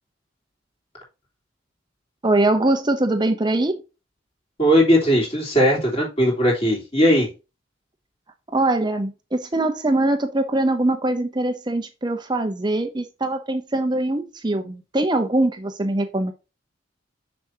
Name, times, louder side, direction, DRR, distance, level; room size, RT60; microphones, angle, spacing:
voice 1, 2.2-3.8 8.5-16.3, right 2 dB, 20° right, 0.7 m, -22 dB
voice 2, 4.6-7.3, equal, 30° left, 3.4 m, -18 dB
6.9 x 6.1 x 2.8 m
head